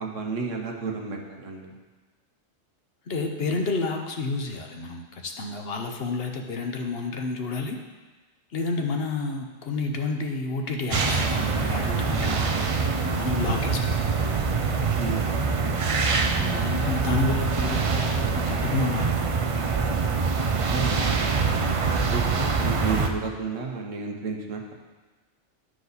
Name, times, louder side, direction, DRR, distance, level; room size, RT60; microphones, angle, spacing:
voice 1, 0.0-1.7 15.0-15.3 20.7-24.7, right 4 dB, 80° right, 1 dB, 1.4 m, -32 dB
voice 2, 3.1-7.8 8.5-14.1 16.3-19.1, left 3 dB, 55° left, 3 dB, 1.0 m, -30 dB
sound 1, 10.9-23.1, right 4 dB, 55° right, 0.3 m, -25 dB
11.5 x 4.8 x 4.0 m, 1.3 s
omnidirectional pair, 1.3 m